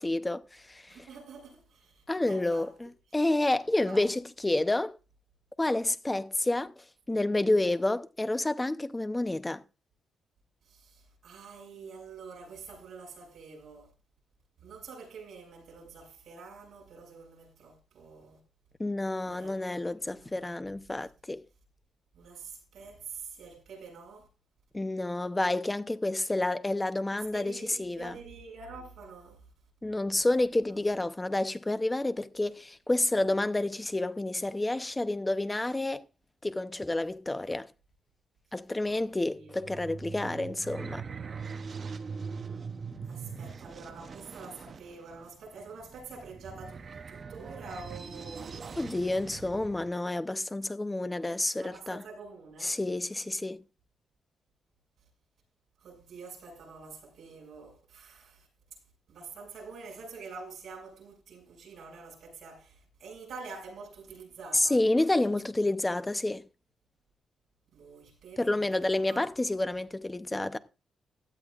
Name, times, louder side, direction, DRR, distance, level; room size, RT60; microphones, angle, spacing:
voice 1, 0.0-1.1 2.1-4.9 5.6-9.6 18.8-21.4 24.7-27.5 27.8-28.2 29.8-36.0 36.4-37.7 38.5-41.0 48.8-52.0 52.6-53.6 64.5-66.4 68.4-70.6, left 2 dB, 10° left, 0.6 m, -29 dB
voice 2, 0.9-2.7 3.9-4.1 10.6-13.9 14.6-18.4 19.3-19.6 20.0-20.5 22.1-24.3 27.1-29.4 38.8-40.0 43.1-49.0 51.6-52.8 55.8-58.5 59.1-64.8 65.2-65.4 67.7-69.3 69.6-69.7, right 4 dB, 60° right, 6.3 m, -47 dB
sound 1, 39.4-49.9, right 5 dB, 35° right, 0.7 m, -42 dB
17.0 x 12.5 x 2.4 m
wide cardioid pair, 150°, 0 cm